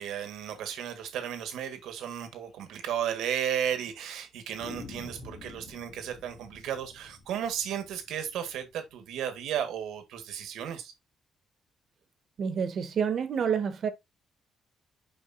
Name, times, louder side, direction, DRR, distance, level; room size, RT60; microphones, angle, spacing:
voice 1, 0.0-10.9, right 9 dB, 85° right, 1.6 m, -34 dB
sound 1, 1.8-1.9 2.2-2.3 2.6-2.7 3.4-3.9 4.6-9.4, left 4 dB, 65° left, 2.1 m, -49 dB
voice 2, 12.4-13.9, right 7 dB, 60° right, 1.4 m, -28 dB
7.8 x 5.1 x 2.7 m
cardioid pair, 90°, 0 cm